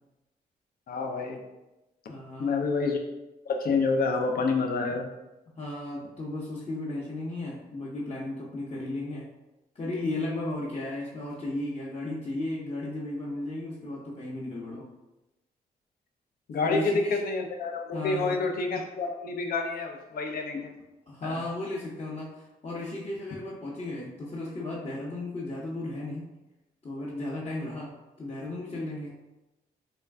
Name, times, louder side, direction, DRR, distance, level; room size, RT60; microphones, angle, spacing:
voice 1, 0.9-1.4 2.4-3.0 3.5-5.1 16.5-20.7 21.2-21.4, left 4 dB, 60° left, 3 dB, 0.5 m, -28 dB
voice 2, 2.1-2.7 5.6-9.2 9.7-14.8 16.6-17.2 17.9-18.4 21.1-26.3 26.8-27.9 28.2-29.1, left 2 dB, 35° left, -7 dB, 0.8 m, -35 dB
3.1 x 2.2 x 3.4 m, 1.0 s
supercardioid pair, 55°, 17 cm